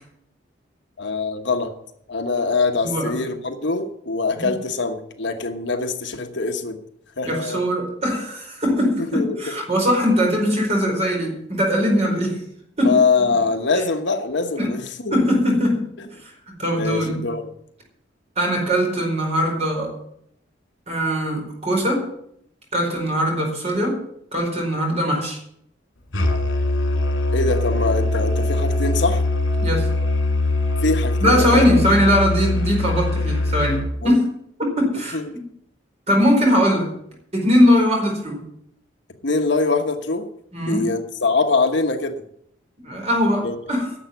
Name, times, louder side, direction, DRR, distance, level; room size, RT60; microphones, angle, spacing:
voice 1, 1.0-1.7 2.1-6.8 7.2-7.6 9.0-9.5 12.8-15.2 16.0-16.1 16.7-17.5 27.3-29.2 30.8-31.6 34.0-34.1 35.1-35.3 39.2-40.3 40.6-42.2 43.4-43.6, left 3 dB, 65° left, 6 dB, 1.2 m, -23 dB
voice 2, 2.8-3.2 4.3-4.5 7.2-12.4 12.8-13.0 13.2-13.4 13.7-13.8 14.6-14.7 15.1-15.8 16.1-17.2 18.4-20.0 20.9-22.1 22.7-24.0 24.3-25.4 29.6-29.9 31.2-34.2 34.8-35.4 36.1-36.9 37.3-38.4 40.5-40.9 42.8-43.9, equal, 35° right, 0 dB, 4.7 m, -20 dB
Musical instrument, 26.1-33.9, left 2 dB, 80° left, 2.5 m, -22 dB
11.5 x 7.1 x 9.3 m, 0.71 s
head